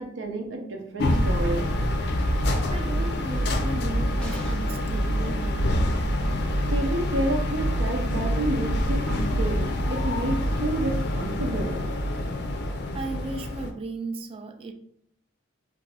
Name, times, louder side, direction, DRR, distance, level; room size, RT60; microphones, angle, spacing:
voice 1, 0.0-1.7 6.7-11.8, right 1 dB, 80° right, 3 dB, 0.6 m, -30 dB
sound 1, 1.0-13.7, equal, 60° left, 0.4 m, -26 dB
voice 2, 2.4-6.1 12.9-14.7, right 3 dB, 30° right, 6 dB, 0.3 m, -36 dB
sound 2, 4.2-4.9 6.9-7.0 7.3-7.4, left 1 dB, 5° left, 0.7 m, -38 dB
2.6 x 2.5 x 3.3 m, 0.69 s
head